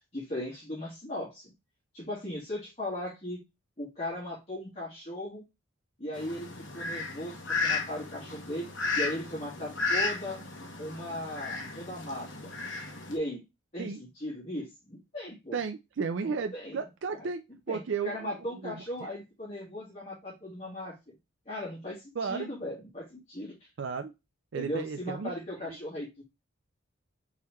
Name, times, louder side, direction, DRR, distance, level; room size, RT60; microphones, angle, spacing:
voice 1, 0.1-1.5 1.9-3.4 3.8-5.4 6.0-6.5 6.7-8.7 8.9-10.4 10.8-12.5 13.1-13.4 13.7-15.6 16.2-16.8 17.1-17.2 17.7-20.9 21.5-23.7 24.5-26.2, left 1 dB, 30° left, -6 dB, 1.7 m, -37 dB
Fowl, 6.1-13.1, left 3 dB, 60° left, 1.1 m, -34 dB
voice 2, 15.5-18.3 18.6-19.1 22.2-22.4 23.8-24.1 24.5-25.3, right 5 dB, 60° right, 7 dB, 0.4 m, -34 dB
4.3 x 3.9 x 3.0 m, 0.23 s
head